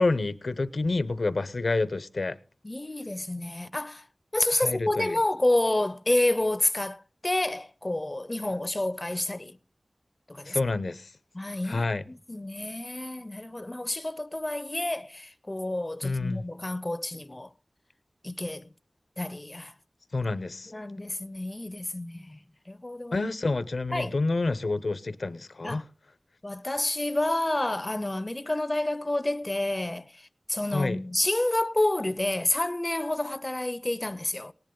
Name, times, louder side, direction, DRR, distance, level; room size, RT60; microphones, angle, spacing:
voice 1, 0.0-2.3 4.5-5.2 10.5-11.1 11.7-12.0 16.0-16.4 20.1-20.7 23.1-25.8 30.7-31.0, left 3 dB, 80° left, 0.7 m, -28 dB
voice 2, 2.6-4.0 4.3-9.6 10.3-10.6 11.3-17.5 18.2-18.7 19.2-19.7 20.7-22.4 22.7-23.3 23.9-24.1 25.6-25.8 26.4-34.5, left 1 dB, 30° left, 0.5 m, -29 dB
19.0 x 10.5 x 3.8 m
wide cardioid pair, 60°, 0 cm